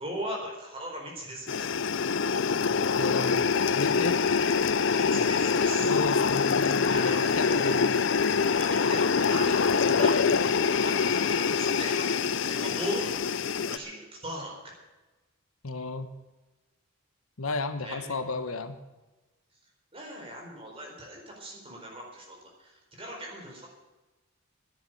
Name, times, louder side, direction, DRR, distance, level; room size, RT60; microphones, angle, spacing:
voice 1, 0.0-1.7 4.9-5.9 6.9-8.0 8.6-13.1 13.7-14.5 17.8-18.2 19.9-23.7, right 1 dB, 25° right, -1 dB, 4.3 m, -39 dB
sound 1, 1.5-13.8, left 5 dB, 60° left, 0.5 m, -25 dB
voice 2, 2.9-3.5 3.7-4.2 5.9-7.8 15.6-16.1 17.4-18.8, left 3 dB, 80° left, 10 dB, 1.1 m, -33 dB
10.5 x 10.5 x 9.3 m, 1.1 s
head